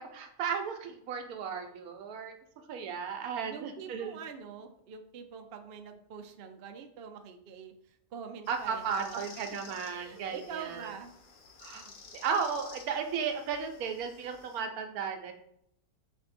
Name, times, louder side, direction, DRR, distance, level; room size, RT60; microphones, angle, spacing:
voice 1, 0.0-2.3 2.7-4.2 8.5-10.9 11.6-11.8 12.1-15.3, right 6 dB, 85° right, 6 dB, 1.1 m, -35 dB
voice 2, 3.5-9.4 9.7-11.1, right 6 dB, 65° right, 5 dB, 0.6 m, -45 dB
sound 1, 8.5-14.6, left 4 dB, 85° left, 1.3 m, -53 dB
4.4 x 2.7 x 4.2 m, 0.73 s
omnidirectional pair, 1.5 m